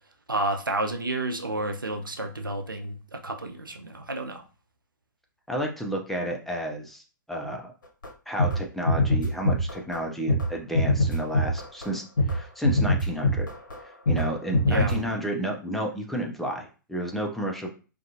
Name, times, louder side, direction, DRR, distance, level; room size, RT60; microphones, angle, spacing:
voice 1, 0.3-4.4 14.7-15.0, right 2 dB, 90° right, 4 dB, 0.4 m, -30 dB
voice 2, 5.5-7.0 7.3-7.7 8.3-13.5 14.1-17.7, right 1 dB, ahead, 0 dB, 0.4 m, -31 dB
sound 1, 8.0-8.1 8.4-8.6 8.9-10.0 10.3-10.5 10.7-11.9 12.2-12.4 12.6-13.8 14.1-14.3 14.5-15.1, left 1 dB, 70° left, 0.7 m, -23 dB
2.4 x 2.2 x 2.7 m, 0.35 s
figure-of-eight pair, 110°, 11 cm